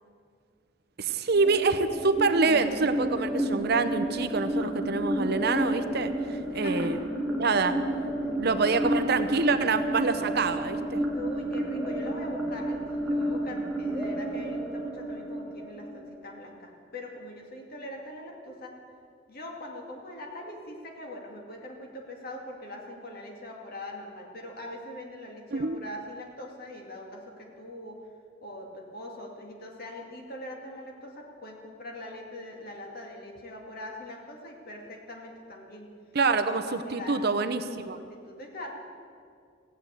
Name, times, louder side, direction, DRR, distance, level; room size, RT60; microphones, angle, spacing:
voice 1, 1.0-7.0 7.4-7.8 8.3-11.0 25.5-25.8 36.1-38.0, right 4 dB, 55° right, 10 dB, 0.7 m, -26 dB
sound 1, 1.3-16.3, right 1 dB, ahead, 1.9 m, -31 dB
voice 2, 6.4-7.1 8.2-9.0 11.1-18.7 19.3-28.0 28.4-35.9 36.6-37.3 37.7-38.7, left 1 dB, 50° left, 0 dB, 2.3 m, -42 dB
15.5 x 8.8 x 8.2 m, 2.3 s
head